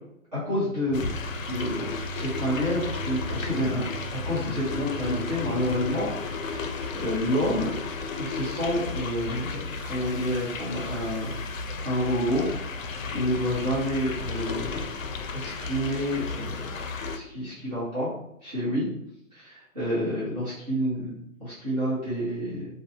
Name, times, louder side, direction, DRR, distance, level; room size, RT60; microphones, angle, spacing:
voice 1, 0.3-1.0 1.5-6.1 6.4-7.7 8.2-11.4 11.8-12.9 13.1-14.9 15.3-16.8 17.1-18.1 18.4-18.9 19.3-21.1 21.4-22.7, equal, 30° right, -11 dB, 0.9 m, -29 dB
sound 1, 0.9-17.2, left 4 dB, 65° left, 0.5 m, -34 dB
Truck, 0.9-6.5, right 1 dB, 35° left, 0.8 m, -38 dB
2.6 x 2.2 x 2.8 m, 0.75 s
hypercardioid pair, 160°, 42 cm